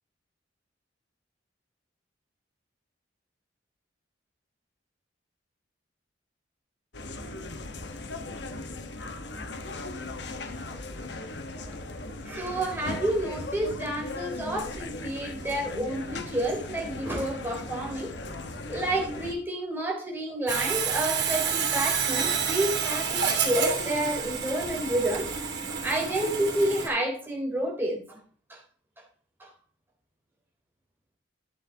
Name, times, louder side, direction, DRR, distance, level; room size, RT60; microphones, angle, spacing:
sound 1, 6.9-19.3, left 2 dB, 65° left, 1.2 m, -38 dB
voice 1, 12.2-18.1 18.7-25.4 25.8-28.2 28.5-28.6, right 1 dB, 10° right, 3.3 m, -30 dB
Sawing, 20.5-26.9, right 6 dB, 70° right, 3.0 m, -29 dB
12.0 x 8.5 x 2.8 m
head